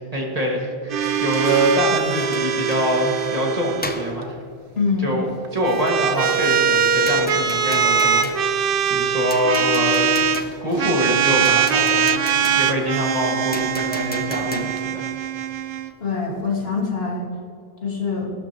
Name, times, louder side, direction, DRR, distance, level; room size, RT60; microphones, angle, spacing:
voice 1, 0.1-4.4 5.0-12.2 12.5-15.1, equal, 35° right, -2 dB, 2.1 m, -24 dB
sound 1, 0.9-4.1 5.4-10.4 10.8-15.9, right 7 dB, 65° right, 0.8 m, -22 dB
sound 2, 1.0-3.5 3.8-4.4 5.6-15.0, left 1 dB, 10° left, 0.5 m, -37 dB
voice 2, 4.8-5.1 16.0-17.3 17.8-18.3, left 4 dB, 75° left, -2 dB, 2.3 m, -24 dB
17.0 x 12.5 x 3.0 m, 2.4 s
omnidirectional pair, 1.0 m